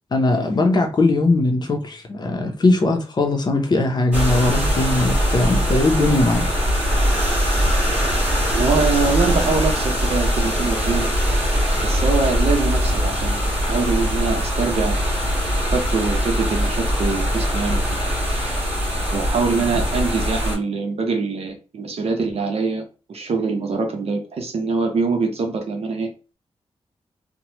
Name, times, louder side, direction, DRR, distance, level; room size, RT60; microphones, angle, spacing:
voice 1, 0.1-6.5, left 2 dB, 40° left, 0.6 m, -19 dB
sound 1, 4.1-20.6, equal, 15° right, 1.3 m, -21 dB
voice 2, 8.5-11.1 11.8-15.0 15.7-17.8 18.3-18.6 19.1-26.1, right 4 dB, 65° right, 0.7 m, -24 dB
3.0 x 2.1 x 2.8 m
wide cardioid pair, 115°, 11 cm